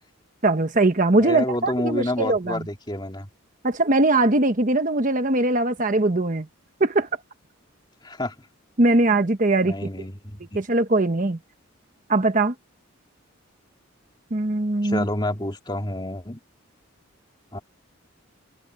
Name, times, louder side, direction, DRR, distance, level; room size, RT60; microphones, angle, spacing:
voice 1, 0.4-2.6 3.6-6.5 6.8-7.1 8.8-9.9 10.5-11.4 12.1-12.5 14.3-15.0, right 2 dB, 40° right, 1.1 m, -21 dB
voice 2, 1.2-3.3 8.0-8.3 9.6-10.4 14.8-16.4 17.5-17.6, left 1 dB, 20° left, 2.7 m, -28 dB
open air
head